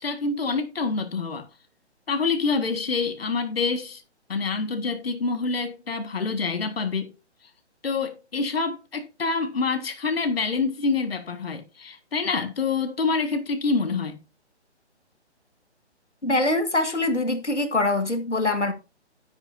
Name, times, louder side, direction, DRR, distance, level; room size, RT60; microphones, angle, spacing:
voice 1, 0.0-1.4 2.1-4.0 4.3-7.1 7.8-14.2, left 4 dB, 55° left, 1.8 m, -26 dB
voice 2, 16.2-18.7, left 2 dB, 85° left, 1.9 m, -23 dB
11.5 x 10.5 x 2.7 m
figure-of-eight pair, 140°, 34 cm